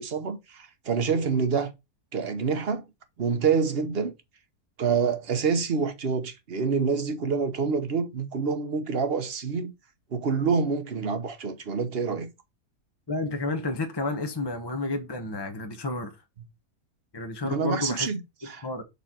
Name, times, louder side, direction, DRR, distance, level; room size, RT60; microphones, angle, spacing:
voice 1, 0.0-1.7 2.1-2.8 3.2-4.1 4.8-9.7 10.1-12.3 17.4-18.6, right 5 dB, 45° right, 1.0 m, -27 dB
voice 2, 13.1-16.2 17.1-18.1 18.6-18.8, left 2 dB, 20° left, 0.7 m, -30 dB
6.8 x 4.1 x 4.3 m
omnidirectional pair, 1.7 m